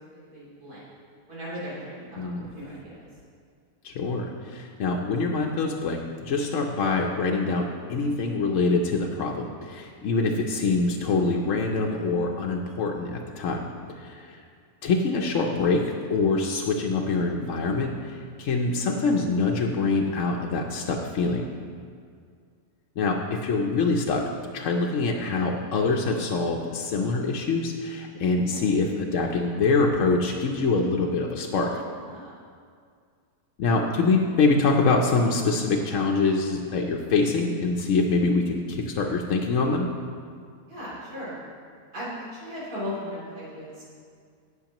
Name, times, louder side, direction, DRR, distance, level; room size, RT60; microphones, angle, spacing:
voice 1, 0.1-0.8 1.3-2.9 28.5-28.7 32.0-32.3 40.7-41.4 41.9-43.9, equal, 80° right, -10 dB, 3.6 m, -37 dB
voice 2, 2.2-2.5 3.8-13.6 14.0-14.4 14.8-15.8 16.1-21.4 23.0-24.2 24.5-31.7 33.6-39.9, left 3 dB, 60° left, 0 dB, 0.9 m, -25 dB
17.5 x 6.4 x 3.0 m, 2.1 s
omnidirectional pair, 1.7 m